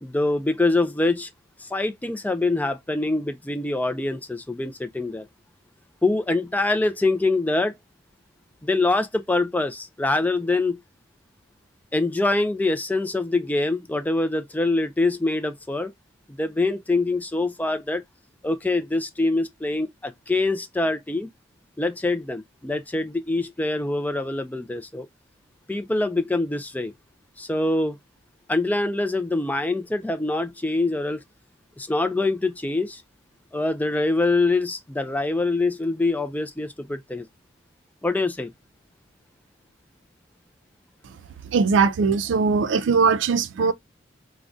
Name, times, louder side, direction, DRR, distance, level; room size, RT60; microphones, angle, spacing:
voice 1, 0.0-1.3 1.6-5.3 6.0-7.7 8.6-10.8 11.9-15.9 16.4-18.0 18.4-21.3 21.8-25.1 25.7-26.9 27.4-28.0 28.5-31.2 31.8-33.0 33.5-37.3 38.0-38.5, left 2 dB, 10° left, 0.3 m, -24 dB
voice 2, 41.4-43.7, right 5 dB, 85° right, 0.4 m, -20 dB
3.7 x 2.1 x 2.3 m
head